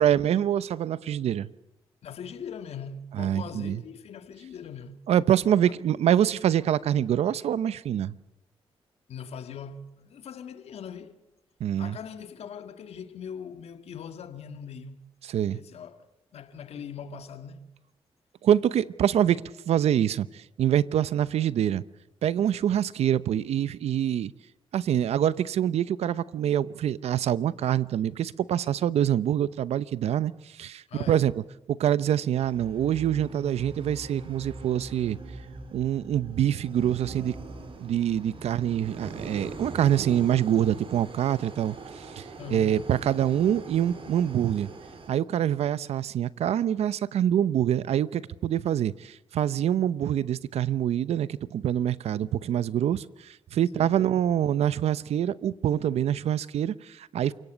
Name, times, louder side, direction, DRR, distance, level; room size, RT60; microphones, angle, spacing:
voice 1, 0.0-1.5 3.2-3.8 5.1-8.2 11.6-12.0 15.3-15.6 18.4-21.8 22.2-24.3 24.7-31.3 31.7-35.2 35.7-37.3 37.8-44.7 45.1-57.3, right 10 dB, 80° right, 0.8 m, -25 dB
voice 2, 2.0-5.0 9.1-11.2 11.8-15.1 15.5-17.6 30.9-31.3 42.4-42.8 53.7-54.0, left 6 dB, 75° left, 1.8 m, -41 dB
sound 1, 32.4-45.1, right 3 dB, 60° right, 5.2 m, -41 dB
28.5 x 17.5 x 8.1 m
cardioid pair, 70°, 11 cm